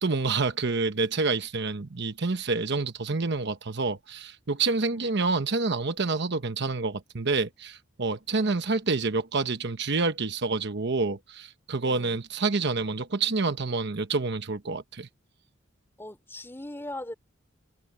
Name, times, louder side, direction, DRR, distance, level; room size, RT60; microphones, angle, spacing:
voice 1, 0.0-15.1, right 3 dB, 60° right, 1.0 m, -28 dB
voice 2, 4.9-5.5 8.3-8.6 11.8-12.2 16.0-17.1, left 1 dB, 10° left, 3.1 m, -41 dB
head